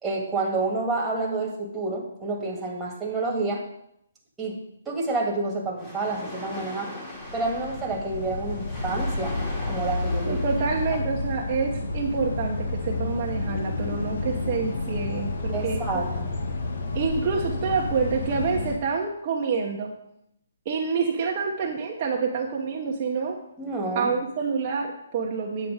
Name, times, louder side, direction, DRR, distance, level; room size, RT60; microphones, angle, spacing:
voice 1, 0.0-3.6 4.4-4.6 4.9-6.9 7.3-9.4 9.6-10.4 15.5-16.3 23.6-24.1, right 3 dB, 5° right, -3 dB, 2.0 m, -29 dB
sound 1, 5.8-11.0, left 1 dB, 15° left, 2.5 m, -40 dB
sound 2, 7.1-18.8, left 2 dB, 65° left, 1.5 m, -30 dB
voice 2, 10.3-16.0 16.9-19.9 20.6-23.4 23.9-25.7, right 5 dB, 35° right, -1 dB, 1.1 m, -27 dB
8.8 x 6.9 x 5.0 m, 0.75 s
hypercardioid pair, 155°, 0 cm